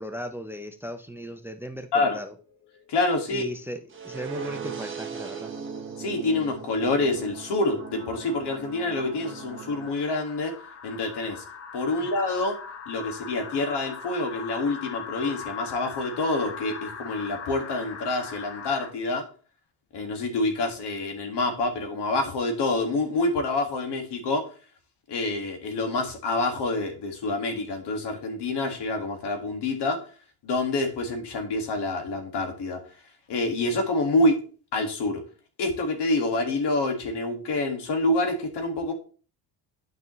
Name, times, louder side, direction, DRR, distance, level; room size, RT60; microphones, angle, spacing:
voice 1, 0.0-2.3 3.3-5.5 12.0-12.1, equal, 5° right, 8 dB, 0.5 m, -37 dB
sound 1, 2.2-3.8 4.2-4.8 6.4-18.9, left 6 dB, 30° left, 1.0 m, -41 dB
voice 2, 2.9-3.5 6.0-10.5 10.8-11.4 11.7-12.6 12.9-19.3 19.9-24.5 25.1-30.0 30.4-32.8 33.3-34.4 34.7-35.2 35.6-38.9, left 2 dB, 60° left, 5 dB, 2.0 m, -27 dB
sound 2, 3.9-9.9, right 6 dB, 25° right, 1.4 m, -38 dB
9.1 x 5.3 x 3.1 m, 0.38 s
cardioid pair, 125°, 46 cm